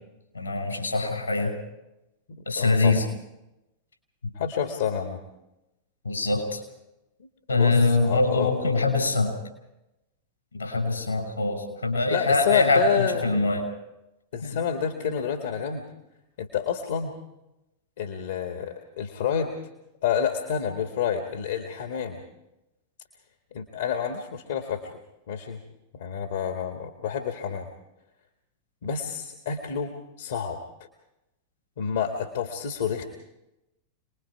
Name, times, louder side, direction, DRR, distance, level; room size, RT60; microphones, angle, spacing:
voice 1, 0.3-1.5 2.5-3.0 6.0-6.6 7.5-9.3 10.5-13.7 14.4-14.6, left 3 dB, 80° left, 4 dB, 5.8 m, -23 dB
voice 2, 2.3-3.1 4.4-5.2 7.5-8.8 12.1-13.4 14.3-15.8 16.4-17.1 18.0-19.5 20.0-22.2 23.5-24.9 25.3-25.6 25.9-27.7 28.8-29.9 30.2-30.6 31.8-33.0, left 7 dB, 60° left, 4 dB, 2.0 m, -29 dB
27.5 x 21.0 x 4.8 m, 0.94 s
figure-of-eight pair, 90°, 0 cm